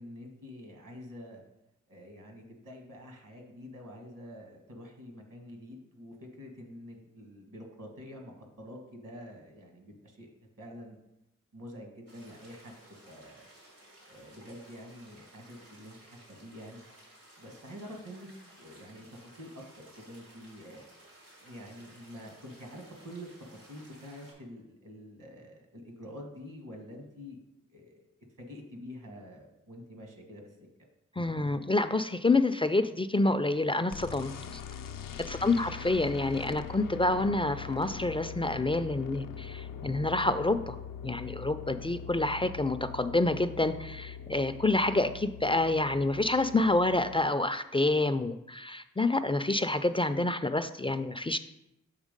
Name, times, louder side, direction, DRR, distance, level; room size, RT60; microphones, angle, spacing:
voice 1, 0.0-1.4 1.9-10.3 10.6-11.0 11.5-13.5 14.1-16.9 17.4-18.3 18.6-20.8 21.4-27.4 27.7-28.1 28.4-30.4 35.4-35.7, equal, 70° right, 1 dB, 1.6 m, -47 dB
sound 1, 12.1-24.3, right 1 dB, 85° right, 2.5 m, -56 dB
voice 2, 31.2-34.6 35.3-40.8 41.0-51.4, left 2 dB, 15° left, 10 dB, 0.3 m, -28 dB
sound 2, 33.9-47.2, left 8 dB, 80° left, 0.5 m, -42 dB
7.3 x 3.3 x 5.2 m, 0.88 s
cardioid pair, 40°, 32 cm